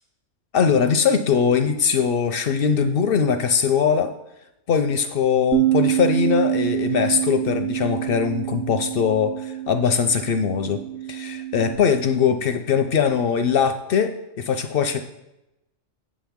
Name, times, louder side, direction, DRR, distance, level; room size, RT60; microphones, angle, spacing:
voice 1, 0.5-4.1 4.7-10.8 11.1-15.0, left 6 dB, 60° left, 8 dB, 0.6 m, -21 dB
Bass guitar, 5.5-11.8, right 14 dB, 55° right, 0.6 m, -26 dB
7.6 x 7.5 x 3.5 m, 0.90 s
omnidirectional pair, 1.3 m